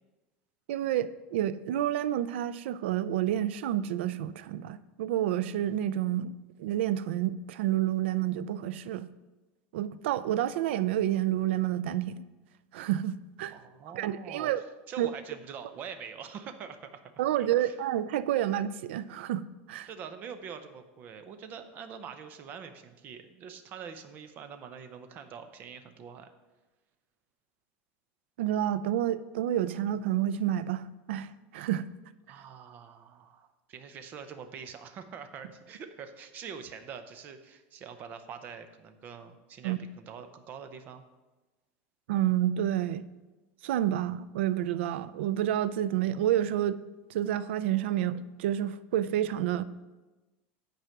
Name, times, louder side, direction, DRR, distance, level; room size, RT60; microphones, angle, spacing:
voice 1, 0.7-6.3 6.6-9.1 9.7-12.2 12.7-13.6 13.9-14.6 15.0-15.1 17.2-19.9 28.4-31.9 39.6-39.8 42.1-43.0 43.6-46.8 47.1-49.6, right 12 dB, 85° right, 0.4 m, -29 dB
voice 2, 13.5-17.1 17.4-17.8 19.8-26.3 32.3-41.1, right 7 dB, 30° right, 0.7 m, -44 dB
9.2 x 4.8 x 5.9 m
supercardioid pair, 170°, 6 cm